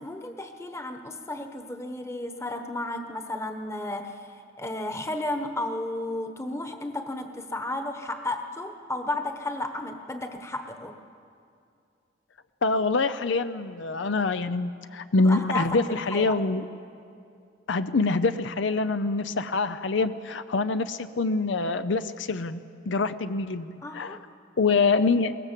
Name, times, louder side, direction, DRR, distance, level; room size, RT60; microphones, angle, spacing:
voice 1, 0.0-11.0 15.2-16.4 23.8-24.2, left 1 dB, 15° left, 6 dB, 1.2 m, -33 dB
voice 2, 12.6-16.6 17.7-24.2 24.6-25.4, left 3 dB, 70° left, 11 dB, 0.6 m, -25 dB
22.5 x 19.5 x 7.4 m, 2.5 s
head